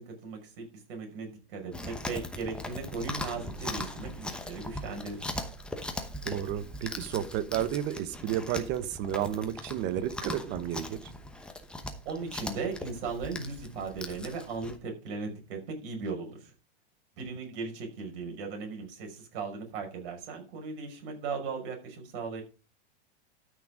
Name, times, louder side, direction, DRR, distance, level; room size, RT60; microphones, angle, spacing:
voice 1, 0.0-5.3 12.0-16.5 17.2-22.4, right 4 dB, 50° right, 5.9 m, -37 dB
Chewing mastication, 1.7-14.8, left 1 dB, 5° left, 0.9 m, -40 dB
voice 2, 6.2-11.1, right 10 dB, 30° right, 1.1 m, -32 dB
13.0 x 6.4 x 5.0 m
supercardioid pair, 155°, 34 cm